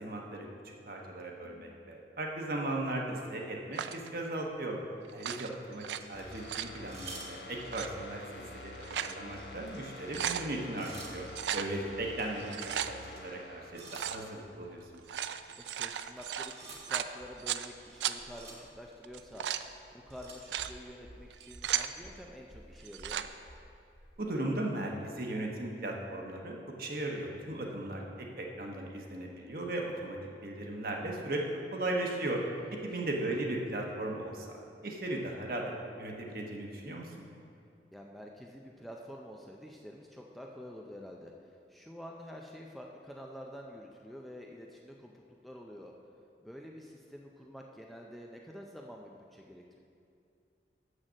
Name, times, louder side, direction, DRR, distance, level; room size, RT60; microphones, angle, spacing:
voice 1, 0.0-4.8 5.1-11.2 11.5-12.5 12.9-13.0 13.2-15.0 24.2-28.0 28.4-30.2 30.4-31.4 31.7-32.4 32.8-35.6 36.0-37.3, right 1 dB, 55° right, 0 dB, 1.1 m, -37 dB
voice 2, 1.4-2.0 2.4-2.5 15.5-19.5 19.9-23.3 27.7-28.3 32.7-33.0 37.9-45.9 46.4-49.8, equal, ahead, -1 dB, 0.4 m, -48 dB
sound 1, 3.7-4.1 5.1-6.0 6.3-6.8 7.6-7.9 8.6-9.2 9.6-9.7 9.9-10.5 11.3-11.7 12.4-12.9 13.9-14.2 14.9-17.7 18.0-18.2 19.0-19.7 20.3-20.7 21.3-21.9 22.8-23.3, right 10 dB, 80° right, 0.3 m, -36 dB
sound 2, 5.9-7.8 8.2-8.4 8.8-11.3 11.9-13.4 13.7-24.2, right 2 dB, 35° right, 1.4 m, -52 dB
sound 3, 6.1-14.8 15.2-15.3, left 2 dB, 80° left, 0.8 m, -48 dB
7.5 x 6.4 x 6.3 m, 2.4 s
head